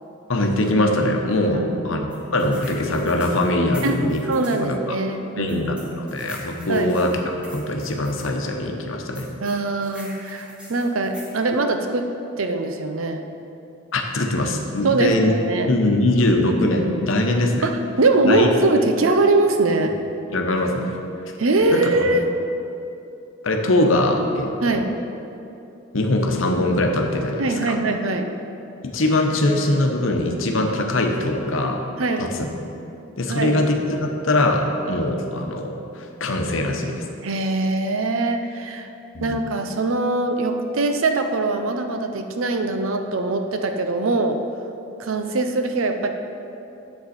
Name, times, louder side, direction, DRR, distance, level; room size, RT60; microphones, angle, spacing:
voice 1, 0.3-4.3 4.6-5.0 5.4-7.1 7.5-9.3 13.9-15.3 15.7-17.7 18.2-18.5 20.3-21.0 21.7-22.2 23.4-24.9 25.9-27.8 28.8-31.9 32.2-32.5 33.2-37.0 39.1-39.4, left 1 dB, 75° left, 3 dB, 1.0 m, -22 dB
voice 2, 1.5-1.8 3.8-4.0 4.3-5.8 6.7-6.9 9.4-12.1 12.4-13.3 14.8-15.7 17.6-19.9 21.4-22.3 24.6-24.9 27.4-28.3 32.0-32.3 33.3-33.5 37.2-38.9 39.2-44.4 45.0-46.1, right 2 dB, 85° right, 6 dB, 0.7 m, -22 dB
sound 1, 2.1-4.6 5.5-8.3 9.2-11.4, equal, 5° right, 1.5 m, -43 dB
9.4 x 7.5 x 4.3 m, 2.8 s
head